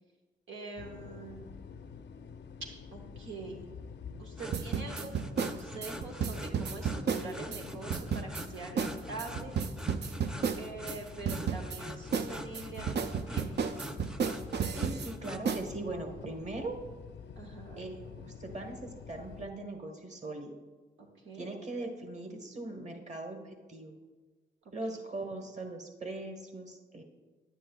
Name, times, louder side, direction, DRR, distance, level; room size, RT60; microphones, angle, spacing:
voice 1, 0.5-1.5 2.9-3.6 4.2-9.5 10.6-13.5 17.4-17.8 21.0-21.5, right 3 dB, 85° right, 1 dB, 0.9 m, -44 dB
sound 1, 0.8-19.5, left 6 dB, 65° left, 0.5 m, -48 dB
sound 2, 4.4-15.4, equal, 5° right, 0.6 m, -45 dB
sound 3, 4.5-7.6 7.9-8.5 8.8-8.9 9.2-11.0 11.3-11.8 12.1-15.1 15.5-15.6, right 6 dB, 60° right, 0.5 m, -32 dB
voice 2, 14.7-16.8 17.8-20.5 21.3-23.9 24.7-27.0, right 2 dB, 35° right, 4 dB, 1.4 m, -40 dB
10.0 x 9.1 x 2.3 m, 1.3 s
cardioid pair, 55°, 20 cm